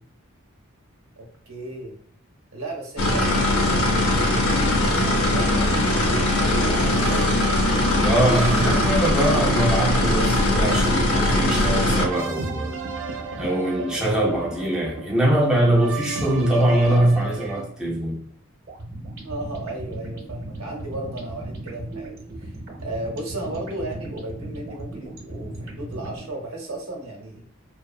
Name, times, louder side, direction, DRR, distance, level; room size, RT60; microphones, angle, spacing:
voice 1, 1.2-2.0 2.5-7.3 19.2-22.5 22.8-27.4, right 2 dB, 80° right, 0.8 m, -35 dB
sound 1, 3.0-12.1, left 1 dB, 80° left, 0.5 m, -20 dB
sound 2, 6.9-17.6, right 4 dB, 65° right, 0.4 m, -34 dB
voice 2, 8.0-12.7 13.4-18.2, right 1 dB, 5° right, 0.4 m, -22 dB
sound 3, 18.7-26.3, right 1 dB, 45° right, 0.8 m, -37 dB
2.6 x 2.1 x 2.3 m
head